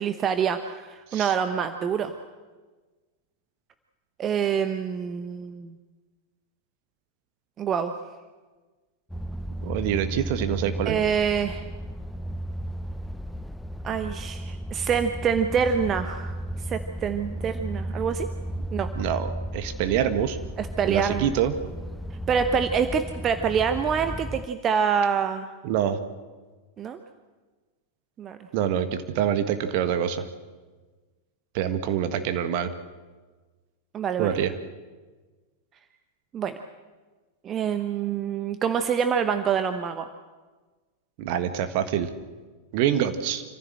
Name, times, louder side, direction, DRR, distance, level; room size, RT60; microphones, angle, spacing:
voice 1, 0.0-2.2 4.2-5.7 7.6-7.9 10.8-11.7 13.8-18.3 18.7-18.9 20.6-21.3 22.3-25.5 26.8-27.0 28.2-28.4 33.9-34.3 36.3-36.6 37.4-40.1, right 7 dB, 25° right, 8 dB, 1.0 m, -26 dB
sound 1, 9.1-24.5, equal, ahead, 0.5 m, -34 dB
voice 2, 9.6-11.0 18.9-20.4 20.8-21.5 25.6-26.0 28.5-30.2 31.5-32.7 34.2-34.5 41.2-42.1 42.7-43.4, right 9 dB, 45° right, 9 dB, 1.6 m, -25 dB
26.5 x 15.0 x 7.7 m, 1.3 s
figure-of-eight pair, 90°, 0 cm